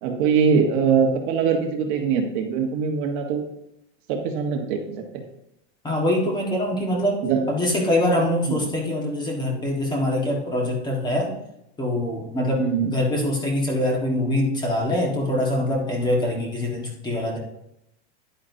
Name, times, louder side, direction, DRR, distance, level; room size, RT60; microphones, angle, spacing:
voice 1, 0.0-3.4 4.1-4.8 5.1-5.2 7.2-7.4 8.5-8.6 12.6-12.9, right 6 dB, 45° right, 3 dB, 1.4 m, -22 dB
voice 2, 5.8-11.3 11.8-17.4, left 1 dB, 10° left, -1 dB, 1.7 m, -24 dB
10.0 x 9.6 x 2.8 m, 0.83 s
supercardioid pair, 165°, 34 cm